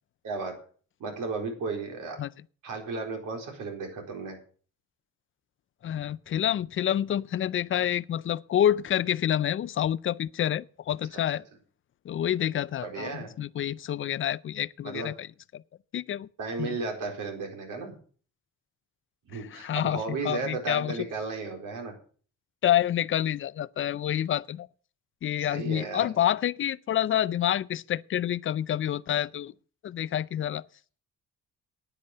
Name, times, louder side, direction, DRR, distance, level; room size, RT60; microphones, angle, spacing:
voice 1, 1.0-2.2 2.6-4.4 12.8-13.3 14.8-15.1 16.4-17.9 19.3-21.9 25.4-26.1, right 4 dB, 85° right, 4.3 m, -34 dB
voice 2, 5.8-11.4 12.0-15.3 15.5-15.6 15.9-16.3 16.6-16.8 19.3-21.0 22.6-24.7 25.2-29.5 29.8-30.6, left 11 dB, 40° left, 0.4 m, -28 dB
9.8 x 9.7 x 6.7 m
cardioid pair, 135°, 31 cm